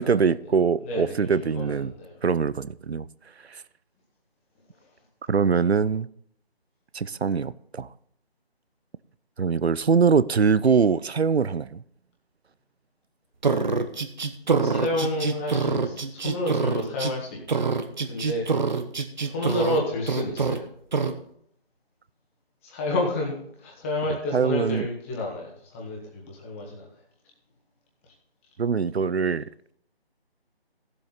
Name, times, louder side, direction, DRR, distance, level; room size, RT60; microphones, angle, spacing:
voice 1, 0.0-1.9 2.2-3.1 3.5-3.6 5.3-6.1 6.9-7.9 9.4-11.8 24.3-24.8 28.6-29.4, right 5 dB, 90° right, 0.6 m, -23 dB
voice 2, 0.8-2.2 14.6-17.7 18.1-18.5 19.2-20.6 22.6-26.9, left 1 dB, 15° left, 1.7 m, -30 dB
sound 1, 13.4-17.1 17.5-19.8 20.1-20.6 20.9-21.1, right 4 dB, 45° right, 1.1 m, -25 dB
15.5 x 7.7 x 4.0 m
figure-of-eight pair, 160°, 31 cm